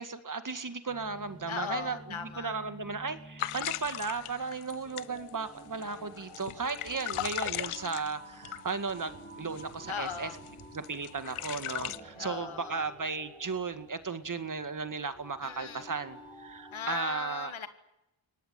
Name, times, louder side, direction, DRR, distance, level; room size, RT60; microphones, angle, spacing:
voice 1, 0.0-10.3 10.7-17.5, right 4 dB, 40° right, 9 dB, 2.0 m, -35 dB
sound 1, 0.9-16.9, right 1 dB, 10° left, 6.2 m, -51 dB
voice 2, 1.5-2.5 7.6-7.9 9.9-10.4 12.2-12.9 15.4-15.9 16.7-17.7, left 7 dB, 70° left, 9 dB, 2.2 m, -38 dB
sound 2, 3.4-9.1 9.5-9.7 10.1-12.0, left 13 dB, 90° left, 0.8 m, -38 dB
Sink (filling or washing), 5.9-6.0 6.6-13.9, right 3 dB, 80° right, 6.0 m, -57 dB
23.5 x 18.5 x 9.4 m, 0.91 s
cardioid pair, 60°, 50 cm